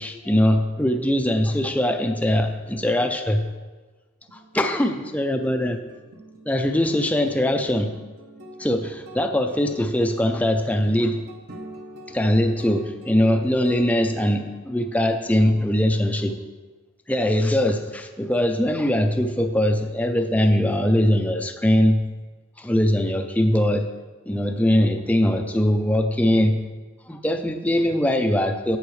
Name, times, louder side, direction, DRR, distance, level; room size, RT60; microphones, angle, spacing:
voice 1, 0.0-3.5 4.3-5.8 6.5-8.0 8.6-11.2 12.1-16.4 17.1-22.1 22.6-23.9 24.3-26.7 27.1-28.8, left 1 dB, 5° left, 5 dB, 0.5 m, -21 dB
sound 1, 4.3-14.1, right 1 dB, 50° right, 1.1 m, -45 dB
11.5 x 7.8 x 3.2 m, 1.3 s
head